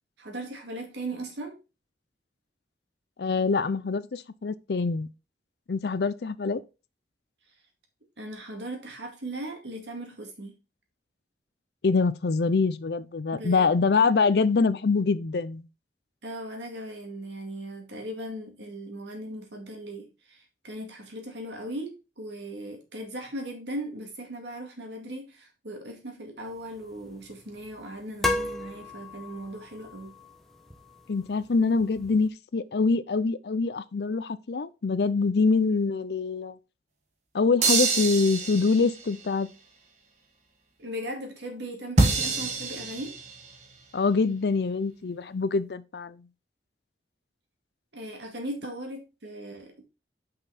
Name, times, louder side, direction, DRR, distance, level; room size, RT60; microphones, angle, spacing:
voice 1, 0.2-1.5 8.2-10.6 13.3-13.7 16.2-30.1 40.8-43.1 47.9-49.8, right 1 dB, 80° right, 2.2 m, -38 dB
voice 2, 3.2-5.1 5.7-6.6 11.8-15.7 31.1-36.6 37.3-39.5 43.9-46.3, left 4 dB, 65° left, 0.5 m, -25 dB
sound 1, 26.4-32.3, left 2 dB, ahead, 0.9 m, -36 dB
sound 2, 37.6-39.1 42.0-43.6, right 3 dB, 40° right, 1.3 m, -26 dB
5.7 x 5.6 x 4.1 m
head